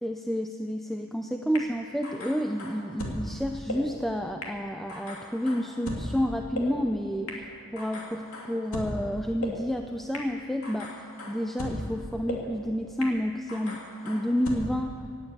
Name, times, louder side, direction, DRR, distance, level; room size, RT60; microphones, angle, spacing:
voice 1, 0.0-14.9, equal, ahead, 4 dB, 0.4 m, -30 dB
sound 1, 1.5-1.6 2.0-3.2 3.7-3.8 4.4-4.5 4.9-6.0 6.5-6.6 7.3-7.4 7.8-8.9 9.4-9.5 10.1-10.2 10.6-11.8 12.3-12.4 13.0-13.1 13.5-14.5, left 1 dB, 70° left, 2.5 m, -38 dB
17.5 x 8.7 x 8.3 m, 2.6 s
head